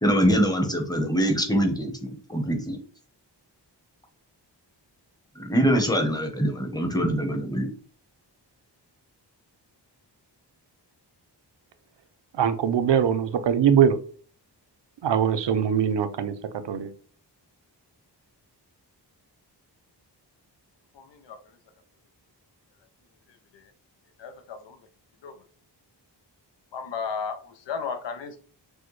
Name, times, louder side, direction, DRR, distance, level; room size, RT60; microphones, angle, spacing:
voice 1, 0.0-2.8 5.3-7.7, equal, 10° left, 0.8 m, -24 dB
voice 2, 12.3-14.0 15.0-16.3 16.6-16.9, right 8 dB, 80° right, 0.6 m, -22 dB
voice 3, 20.9-21.4 23.5-23.7 24.2-24.8 25.2-25.3 26.7-28.4, left 6 dB, 80° left, 0.6 m, -34 dB
6.2 x 2.2 x 3.1 m
wide cardioid pair, 130°, 42 cm